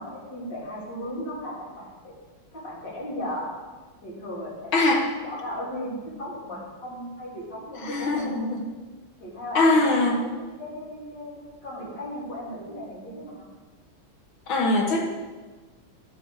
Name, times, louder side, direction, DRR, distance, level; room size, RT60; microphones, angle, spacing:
voice 1, 0.0-2.1 2.5-3.5 4.0-4.7 5.2-8.3 9.2-13.5, equal, 60° left, -7 dB, 4.0 m, -36 dB
voice 2, 4.7-5.1 7.8-8.6 9.5-10.2 14.5-15.0, left 2 dB, 80° left, 1 dB, 2.2 m, -22 dB
12.5 x 7.1 x 4.9 m, 1.3 s
omnidirectional pair, 2.2 m